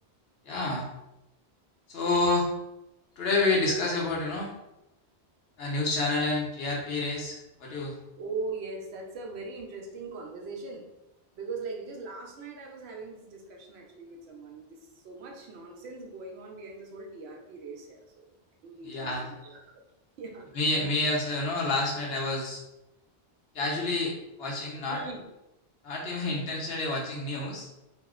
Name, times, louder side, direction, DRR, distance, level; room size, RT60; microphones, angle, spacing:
voice 1, 0.4-0.9 1.9-2.5 3.2-4.5 5.6-8.0 18.8-19.3 20.5-22.6 23.5-25.0 25.8-27.7, left 2 dB, 70° left, -2 dB, 1.0 m, -29 dB
voice 2, 8.2-10.8 11.4-14.8 15.0-18.3 18.6-19.1 19.4-19.6 20.2-20.5 24.9-25.3, right 3 dB, 80° right, 1 dB, 0.9 m, -40 dB
2.7 x 2.0 x 3.6 m, 0.92 s
omnidirectional pair, 1.1 m